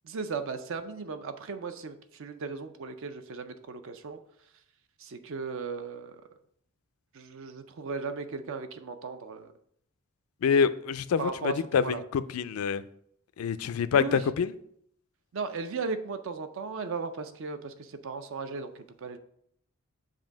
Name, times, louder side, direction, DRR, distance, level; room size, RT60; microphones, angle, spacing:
voice 1, 0.0-4.2 5.0-6.2 7.1-9.5 11.2-12.0 13.9-14.3 15.3-19.2, right 4 dB, 65° right, 9 dB, 0.5 m, -36 dB
voice 2, 10.4-12.8 13.4-14.5, left 6 dB, 85° left, 14 dB, 0.4 m, -26 dB
7.4 x 2.7 x 5.0 m, 0.70 s
head